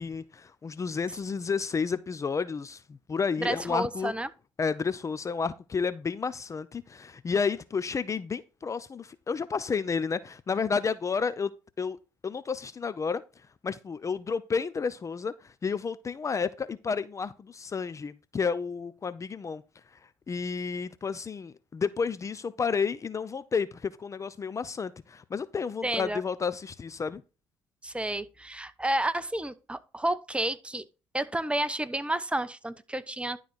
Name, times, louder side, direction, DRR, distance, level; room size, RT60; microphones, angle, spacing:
voice 1, 0.0-4.1 4.6-12.0 12.2-13.2 13.6-19.6 20.3-27.2, left 5 dB, 30° left, 0.6 m, -31 dB
voice 2, 3.4-4.3 25.8-26.2 27.8-30.8 31.1-33.4, right 1 dB, 10° right, 0.8 m, -30 dB
11.5 x 4.0 x 4.5 m
supercardioid pair, 70°, 10 cm